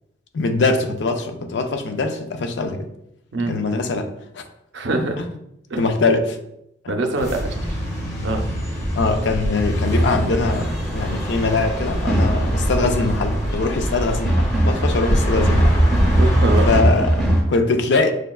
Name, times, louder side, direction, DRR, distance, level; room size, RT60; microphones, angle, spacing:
voice 1, 0.3-2.9 3.5-4.4 5.2-5.3 5.8-6.4 6.8-7.0 9.0-15.8 16.7-18.1, left 3 dB, 65° left, 6 dB, 0.4 m, -22 dB
voice 2, 4.7-5.2 5.7-5.8 6.9-7.8 8.2-8.4 16.2-16.7, right 2 dB, 70° right, 4 dB, 0.5 m, -23 dB
sound 1, 7.2-16.8, equal, 35° left, 0.8 m, -25 dB
sound 2, 9.9-17.4, right 1 dB, 5° left, 0.6 m, -21 dB
6.3 x 2.2 x 2.3 m, 0.80 s
head